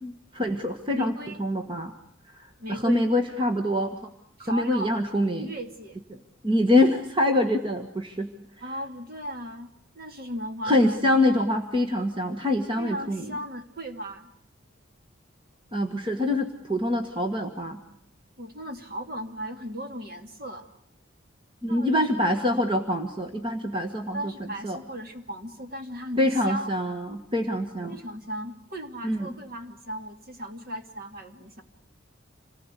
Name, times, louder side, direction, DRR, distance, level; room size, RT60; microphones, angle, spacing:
voice 1, 0.0-1.1 1.4-1.9 2.4-4.1 4.4-5.5 6.4-8.3 10.6-13.3 15.7-17.8 21.6-24.3 24.6-24.8 26.2-28.0 29.0-29.3, left 1 dB, 25° right, 5 dB, 1.6 m, -25 dB
voice 2, 0.9-1.4 2.6-3.1 4.4-5.0 5.4-6.0 8.6-11.0 12.8-14.3 18.4-20.6 21.7-22.6 24.1-26.7 27.9-31.6, right 1 dB, 45° right, 5 dB, 2.6 m, -37 dB
27.5 x 20.0 x 8.4 m, 0.69 s
head